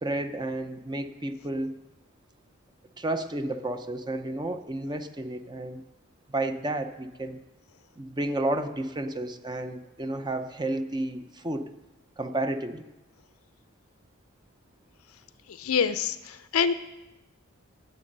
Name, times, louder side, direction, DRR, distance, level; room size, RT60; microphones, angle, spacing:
voice 1, 0.0-1.8 3.0-5.8 6.3-7.4 8.0-11.7 12.2-12.9, right 1 dB, 20° right, 8 dB, 0.7 m, -31 dB
voice 2, 15.5-16.7, left 6 dB, 75° left, 12 dB, 0.6 m, -26 dB
17.5 x 7.7 x 5.4 m, 1.0 s
head